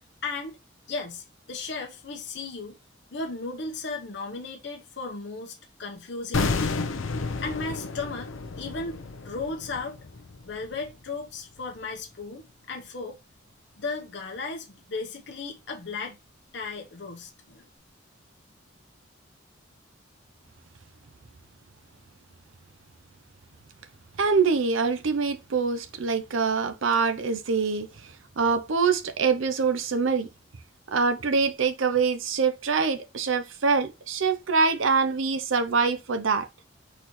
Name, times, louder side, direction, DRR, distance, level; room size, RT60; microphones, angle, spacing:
voice 1, 0.2-0.6 0.9-2.8 3.1-6.7 7.4-10.0 10.4-13.2 13.8-16.2 16.5-17.7, left 3 dB, 60° left, 0.9 m, -35 dB
sound 1, 6.3-11.4 11.6-11.8, left 4 dB, 90° left, 0.6 m, -31 dB
voice 2, 24.2-28.1 28.4-30.3 30.9-36.5, right 5 dB, 80° right, 0.6 m, -24 dB
4.3 x 4.1 x 3.0 m
head